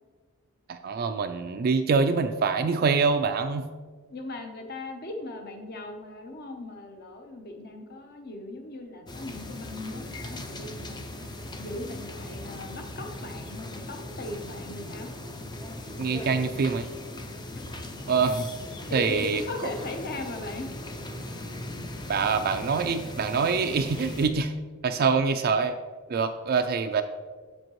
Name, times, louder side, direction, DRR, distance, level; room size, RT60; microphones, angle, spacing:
voice 1, 0.7-3.7 16.0-16.9 18.1-18.5 18.9-19.4 21.8-24.5 24.8-25.8 26.1-27.0, right 5 dB, 45° right, 6 dB, 0.3 m, -25 dB
voice 2, 4.1-11.3 11.6-15.1 17.5-17.6 18.9-20.9, left 2 dB, 45° left, 4 dB, 0.9 m, -38 dB
sound 1, 9.1-24.3, left 1 dB, 20° left, 0.5 m, -39 dB
7.6 x 7.5 x 3.1 m, 1.5 s
head